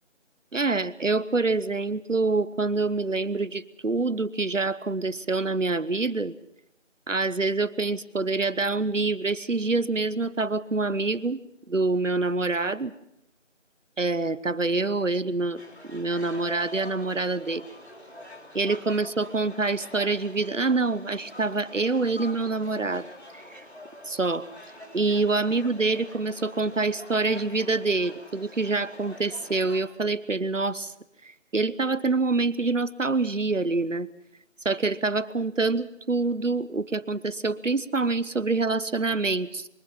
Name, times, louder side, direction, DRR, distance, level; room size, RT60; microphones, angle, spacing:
voice 1, 0.5-6.3 7.1-11.4 11.7-12.9 14.0-17.7 18.5-23.1 23.3-23.6 24.1-24.5 24.9-30.9 31.5-34.1 34.6-39.7, right 3 dB, 80° right, 16 dB, 1.2 m, -26 dB
sound 1, 15.5-29.8, left 1 dB, 60° left, 3.7 m, -45 dB
24.5 x 23.5 x 5.7 m, 0.78 s
figure-of-eight pair, 170°, 37 cm